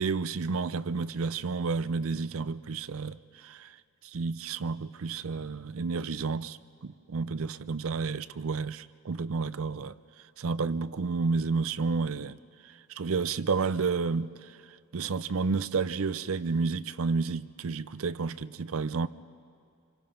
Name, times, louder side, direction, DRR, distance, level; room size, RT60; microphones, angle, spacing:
voice 1, 0.0-3.8 4.0-9.9 10.4-12.4 12.6-14.6 14.9-19.1, right 4 dB, 65° right, 0.5 m, -31 dB
27.0 x 25.0 x 5.8 m
head